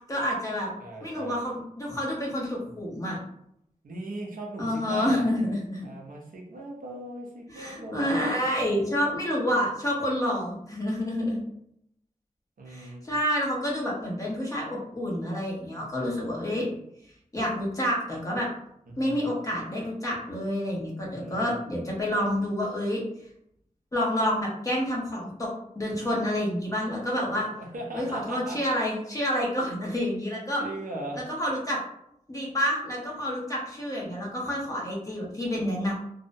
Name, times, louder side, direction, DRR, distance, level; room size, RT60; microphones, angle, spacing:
voice 1, 0.1-0.7 1.0-3.2 4.6-5.9 7.5-11.4 12.7-16.6 17.3-18.5 19.0-23.0 23.9-25.5 25.7-27.4 27.9-30.6 31.1-31.8 32.3-35.9, equal, 25° left, -4 dB, 0.8 m, -28 dB
voice 2, 0.8-1.4 3.8-5.3 5.8-9.2 12.6-13.0 15.8-16.7 18.9-19.3 21.2-21.6 27.6-28.6 30.6-31.2, right 1 dB, 90° right, -1 dB, 0.6 m, -39 dB
2.6 x 2.1 x 2.6 m, 0.76 s
wide cardioid pair, 85°, 14 cm